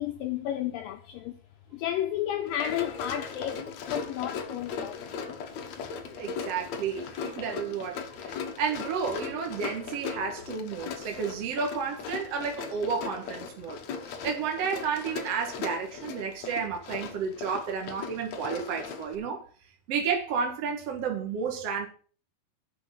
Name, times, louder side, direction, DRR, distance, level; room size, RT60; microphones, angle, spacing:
voice 1, 0.0-1.4 1.7-5.1 5.6-5.7 6.1-6.2 8.1-8.2, left 11 dB, 80° left, 2.0 m, -32 dB
Run, 2.5-19.2, left 6 dB, 60° left, 1.9 m, -38 dB
voice 2, 6.2-13.8 14.2-19.4 19.9-21.9, right 6 dB, 50° right, 2.1 m, -31 dB
10.5 x 5.9 x 7.4 m
omnidirectional pair, 4.7 m